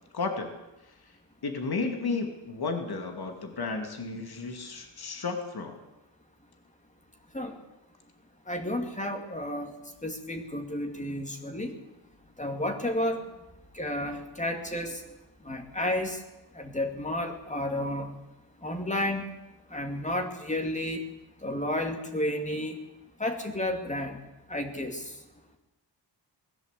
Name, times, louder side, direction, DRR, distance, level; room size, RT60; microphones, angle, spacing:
voice 1, 0.1-0.5 1.4-5.8, left 4 dB, 55° left, 5 dB, 2.5 m, -33 dB
voice 2, 8.5-9.7 10.0-11.7 12.4-13.3 13.7-15.0 15.4-16.2 16.5-18.1 18.6-19.3 19.7-21.0 21.4-22.8 23.2-24.2 24.5-25.2, left 1 dB, 15° left, 4 dB, 2.6 m, -32 dB
21.0 x 15.0 x 8.4 m, 0.99 s
wide cardioid pair, 175°, 44 cm